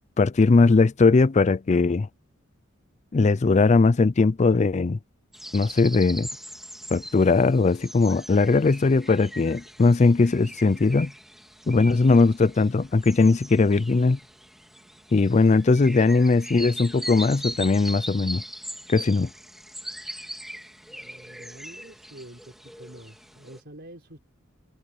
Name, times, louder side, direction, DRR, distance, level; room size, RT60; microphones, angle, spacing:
voice 1, 0.2-2.1 3.1-5.0 5.5-6.3 6.9-11.1 11.7-14.2 15.1-18.4 18.9-19.3, left 3 dB, 35° left, 0.4 m, -19 dB
sound 1, 5.3-23.6, equal, ahead, 3.1 m, -40 dB
voice 2, 20.9-24.2, right 1 dB, 55° right, 4.7 m, -47 dB
head